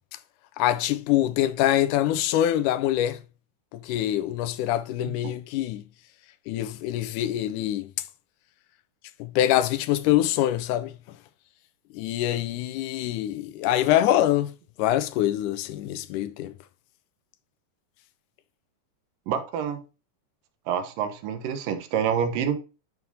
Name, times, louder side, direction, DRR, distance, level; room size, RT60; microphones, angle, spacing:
voice 1, 0.6-3.2 3.7-5.8 6.5-7.9 9.2-10.9 11.9-14.5 14.8-16.5, left 13 dB, 80° left, 2.0 m, -24 dB
voice 2, 5.0-5.3 19.3-19.8 20.7-22.7, right 8 dB, 85° right, 2.7 m, -28 dB
11.0 x 4.7 x 2.7 m
omnidirectional pair, 3.8 m